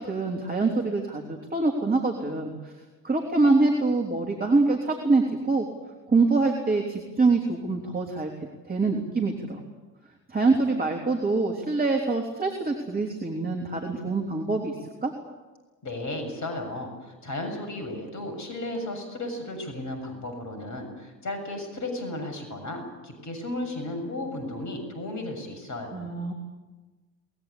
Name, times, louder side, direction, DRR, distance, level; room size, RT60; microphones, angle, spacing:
voice 1, 0.0-2.7 3.0-5.6 6.1-8.3 8.7-9.6 10.3-15.1 25.9-26.3, right 3 dB, 20° right, 2 dB, 3.4 m, -25 dB
voice 2, 15.8-26.1, left 1 dB, 35° left, 5 dB, 7.1 m, -34 dB
23.5 x 20.5 x 8.7 m, 1.2 s
figure-of-eight pair, 65°, 48 cm